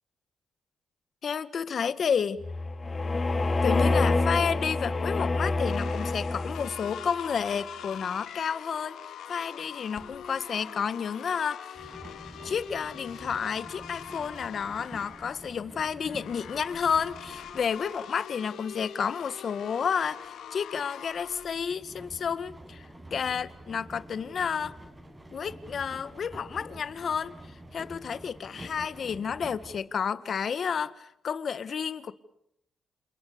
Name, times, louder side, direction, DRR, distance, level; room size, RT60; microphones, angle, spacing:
voice 1, 1.2-2.4 3.6-9.0 9.3-11.9 12.4-24.8 25.3-32.1, left 7 dB, 60° left, 15 dB, 1.8 m, -31 dB
sound 1, 2.4-7.0, left 3 dB, 35° left, 3.4 m, -27 dB
sound 2, 4.3-21.5, left 8 dB, 85° left, 2.6 m, -43 dB
sound 3, 11.7-18.2 18.7-29.8, right 1 dB, 15° right, 7.0 m, -48 dB
29.5 x 28.5 x 6.8 m, 0.74 s
cardioid pair, 85°, 0 cm